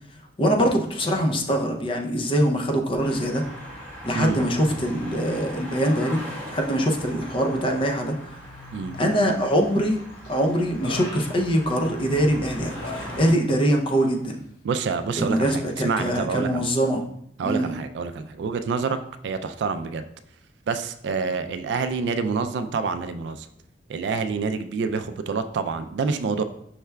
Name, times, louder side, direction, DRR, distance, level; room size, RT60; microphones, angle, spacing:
voice 1, 0.4-3.4 4.0-8.2 9.0-10.0 10.3-14.4 15.2-17.0 17.5-17.7, equal, 30° left, 3 dB, 0.5 m, -23 dB
sound 1, 3.0-13.3, equal, 10° left, 1.1 m, -39 dB
Human voice, 8.9-9.6 10.0-12.1 12.5-13.6 13.9-14.2, left 1 dB, 90° left, 0.9 m, -42 dB
voice 2, 14.6-16.6 17.4-19.0 19.2-20.0 20.7-23.5 23.9-26.4, right 5 dB, 70° right, 10 dB, 0.3 m, -27 dB
5.6 x 3.3 x 2.2 m, 0.70 s
head